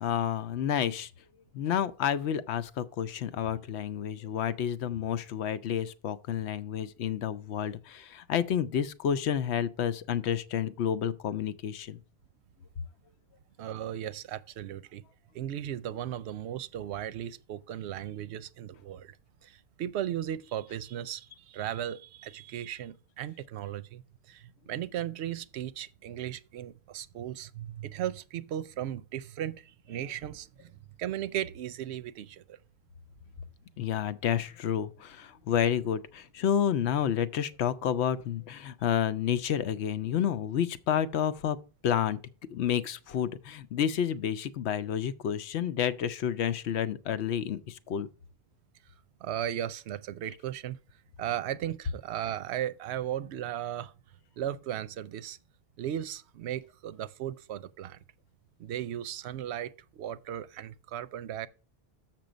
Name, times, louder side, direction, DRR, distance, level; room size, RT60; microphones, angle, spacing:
voice 1, 0.0-1.1 1.5-12.0 33.8-41.6 41.8-42.2 42.5-48.1, left 9 dB, 85° left, 0.9 m, -30 dB
voice 2, 13.6-15.0 15.3-19.2 19.4-30.7 31.0-32.6 49.2-50.8 51.2-53.9 54.4-55.4 55.8-58.0 58.6-61.5, right 11 dB, 85° right, 0.8 m, -36 dB
6.9 x 6.1 x 5.0 m
omnidirectional pair, 1.1 m